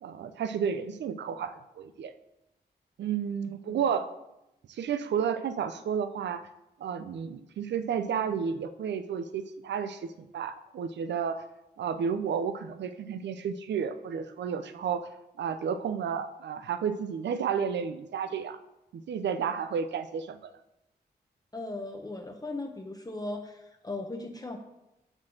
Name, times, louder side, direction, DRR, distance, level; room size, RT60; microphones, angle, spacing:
voice 1, 0.0-2.1 3.0-4.1 4.7-6.5 6.8-11.4 11.8-15.1 15.4-18.6 18.9-20.4, right 7 dB, 90° right, 11 dB, 0.5 m, -32 dB
voice 2, 21.5-24.6, left 2 dB, 20° left, 3 dB, 0.7 m, -38 dB
6.1 x 4.3 x 6.3 m, 0.90 s
cardioid pair, 65°, 18 cm